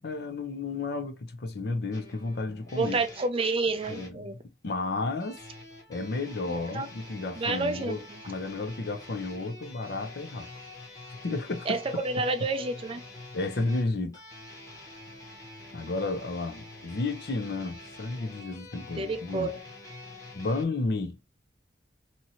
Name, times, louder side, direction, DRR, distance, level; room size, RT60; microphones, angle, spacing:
voice 1, 0.0-3.0 3.9-5.4 5.9-10.5 11.2-12.3 13.3-14.2 15.7-19.5 20.3-21.2, left 3 dB, 65° left, 0.6 m, -32 dB
sound 1, 1.9-4.2 5.2-20.6, left 2 dB, 20° left, 1.0 m, -46 dB
voice 2, 2.8-4.3 6.5-6.9 7.4-8.0 11.7-11.8 12.0-13.0 19.0-19.6, right 3 dB, 30° right, 0.4 m, -29 dB
2.7 x 2.7 x 2.7 m
head